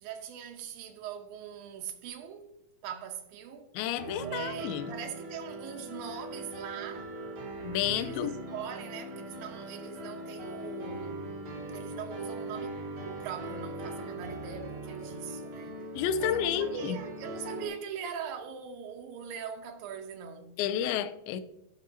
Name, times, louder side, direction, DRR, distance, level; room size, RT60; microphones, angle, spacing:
voice 1, 0.0-2.5 2.8-3.7 4.2-7.1 7.9-11.3 11.7-12.8 13.2-15.8 16.2-20.6, right 8 dB, 80° right, 2.1 m, -41 dB
voice 2, 3.7-4.9 7.6-8.3 16.0-17.0 20.6-21.4, left 9 dB, 85° left, 2.2 m, -30 dB
Piano, 4.0-17.7, right 1 dB, 60° right, 1.4 m, -40 dB
12.5 x 6.1 x 2.7 m
omnidirectional pair, 4.9 m